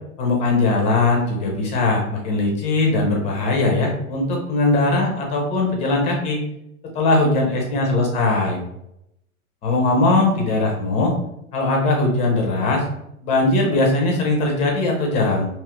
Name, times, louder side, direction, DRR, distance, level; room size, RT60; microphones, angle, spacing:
voice 1, 0.2-6.4 6.9-8.6 9.6-11.1 11.5-12.8 13.2-15.5, left 2 dB, 15° left, 0 dB, 0.4 m, -20 dB
2.9 x 2.4 x 2.9 m, 0.80 s
hypercardioid pair, 120°, 43 cm